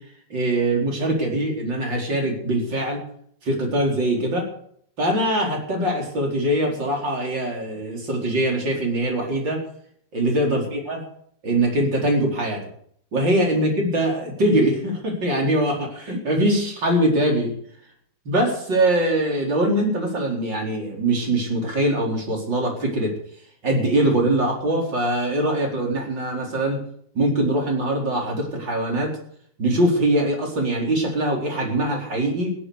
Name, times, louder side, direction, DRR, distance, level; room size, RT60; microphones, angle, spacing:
voice 1, 0.3-3.0 3.4-4.5 5.0-9.7 10.1-11.1 11.4-12.7 13.1-17.5 18.3-23.2 23.6-26.8 27.2-29.2 29.6-32.6, right 1 dB, 80° right, 0 dB, 5.3 m, -22 dB
16.0 x 11.5 x 6.7 m, 0.63 s
omnidirectional pair, 2.0 m